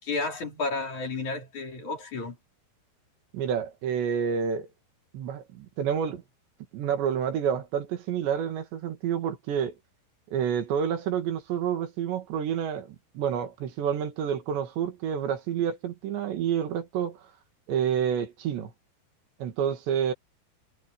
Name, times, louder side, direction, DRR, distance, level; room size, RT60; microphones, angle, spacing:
voice 1, 0.0-2.4, left 3 dB, 45° left, 5.5 m, -32 dB
voice 2, 3.3-4.7 5.1-6.2 6.7-9.7 10.3-17.2 17.7-18.7 19.4-20.1, right 8 dB, 80° right, 4.4 m, -29 dB
omnidirectional pair, 5.1 m